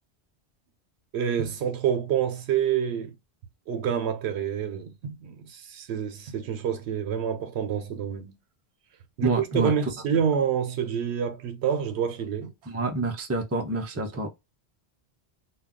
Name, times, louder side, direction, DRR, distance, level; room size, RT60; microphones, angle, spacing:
voice 1, 1.1-3.1 3.7-8.3 9.2-12.5 13.9-14.3, right 8 dB, 85° right, 0.9 m, -28 dB
voice 2, 9.2-9.7 12.7-14.3, right 3 dB, 20° right, 0.4 m, -27 dB
2.3 x 2.2 x 3.6 m
omnidirectional pair, 1.1 m